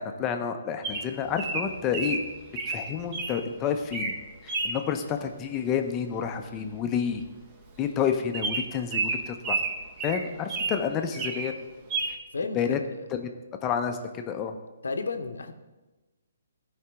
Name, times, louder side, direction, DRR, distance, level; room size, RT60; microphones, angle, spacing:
voice 1, 0.0-2.2 2.7-4.1 4.4-7.2 7.8-9.6 10.0-11.6 12.6-12.8 13.1-13.3 13.6-14.5, left 7 dB, 20° left, 5 dB, 0.6 m, -29 dB
Bird vocalization bird call bird song, 0.8-3.4 3.8-4.2 4.5-4.8 6.2-6.5 6.7-6.8 7.1-7.3 7.7-7.8 8.3-10.8 11.1-11.5 11.9-12.1, right 3 dB, 30° right, 1.1 m, -30 dB
voice 2, 12.3-13.1 14.8-15.5, left 4 dB, 80° left, 8 dB, 0.8 m, -33 dB
12.5 x 4.9 x 3.5 m, 1.1 s
hypercardioid pair, 140°, 0 cm